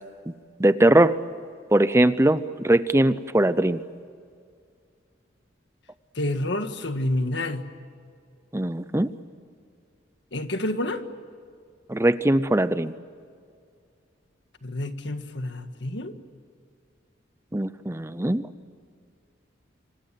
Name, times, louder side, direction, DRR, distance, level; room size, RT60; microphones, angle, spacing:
voice 1, 0.6-1.2 1.7-3.8 8.5-9.1 11.9-12.9 17.5-18.5, right 1 dB, 15° right, 14 dB, 0.6 m, -20 dB
voice 2, 6.2-7.6 10.3-11.0 14.6-16.1, left 1 dB, 70° left, 8 dB, 1.8 m, -28 dB
27.0 x 26.0 x 7.6 m, 2.2 s
head